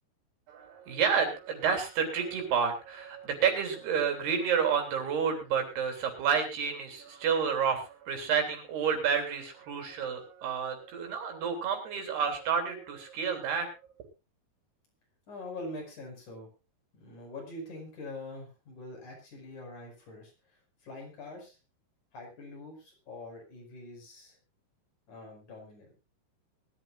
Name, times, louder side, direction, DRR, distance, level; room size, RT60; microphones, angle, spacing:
voice 1, 0.5-13.7, right 6 dB, 80° right, 4 dB, 5.2 m, -30 dB
voice 2, 15.3-16.5 16.9-20.3 20.8-21.6 22.1-24.4 25.1-25.9, left 2 dB, 50° left, 1 dB, 6.7 m, -44 dB
22.0 x 13.0 x 2.5 m, 0.29 s
omnidirectional pair, 4.6 m